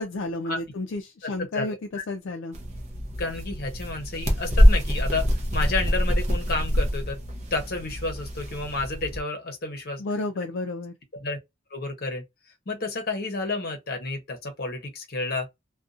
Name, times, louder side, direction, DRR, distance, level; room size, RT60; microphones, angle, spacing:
voice 1, 0.0-1.8 2.1-2.6 10.0-10.9, left 2 dB, 70° left, 0.4 m, -31 dB
voice 2, 1.2-1.7 1.9-2.0 3.2-7.2 7.5-10.0 11.2-11.4 11.7-12.2 12.7-15.5, left 3 dB, 50° left, 0.8 m, -31 dB
sound 1, 2.5-9.2, equal, 35° right, 0.6 m, -24 dB
2.5 x 2.2 x 2.4 m
head